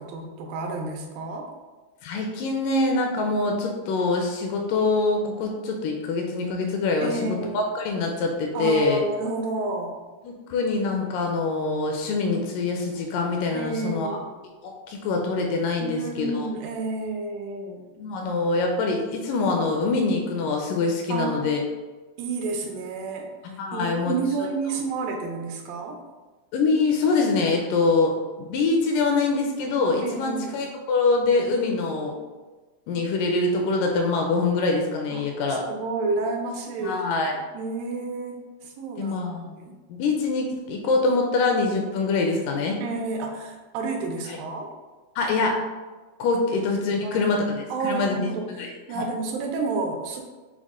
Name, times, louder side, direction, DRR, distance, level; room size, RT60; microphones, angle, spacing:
voice 1, 0.0-1.5 7.0-7.7 8.5-9.9 13.5-14.3 15.8-17.8 21.1-21.4 22.2-23.3 23.7-26.0 30.0-30.5 35.1-35.2 35.7-37.0 37.3-39.7 42.8-44.7 46.5-46.6 46.9-47.3 47.7-50.2, right 3 dB, 85° right, 2 dB, 2.4 m, -30 dB
voice 2, 2.0-9.1 10.2-14.2 14.6-16.5 18.0-21.6 23.4-24.2 26.5-32.1 32.9-35.7 36.8-37.3 39.0-39.6 39.9-42.8 44.3-44.4 45.2-45.6 46.2-49.0, left 3 dB, 80° left, 1 dB, 2.0 m, -24 dB
6.2 x 2.1 x 3.5 m, 1.3 s
omnidirectional pair, 3.9 m